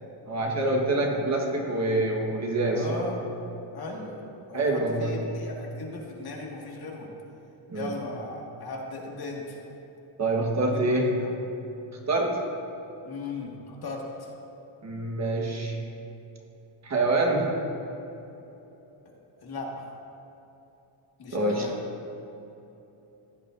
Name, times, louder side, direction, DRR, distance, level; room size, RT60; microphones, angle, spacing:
voice 1, 0.3-3.1 4.5-5.1 7.7-7.9 10.2-11.1 12.1-12.4 14.8-15.8 16.8-17.6 21.3-21.7, right 2 dB, 30° right, 0 dB, 1.4 m, -26 dB
voice 2, 2.7-3.2 3.7-4.2 4.5-7.1 7.7-9.6 10.7-11.3 13.0-14.3 19.4-19.8 21.2-21.8, left 3 dB, 45° left, -1 dB, 2.0 m, -37 dB
16.0 x 9.7 x 2.7 m, 3.0 s
cardioid pair, 120°, 50 cm